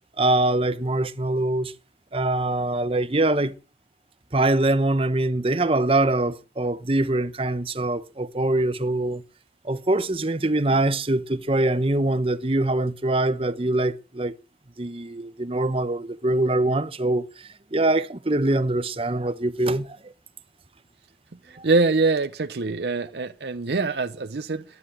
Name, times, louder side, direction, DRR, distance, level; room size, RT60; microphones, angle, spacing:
voice 1, 0.2-1.7 2.1-3.5 4.3-9.2 9.6-14.3 14.8-20.0, right 2 dB, 30° right, 0.9 m, -23 dB
voice 2, 21.5-24.6, right 3 dB, 65° right, 0.7 m, -24 dB
10.5 x 9.4 x 9.9 m
head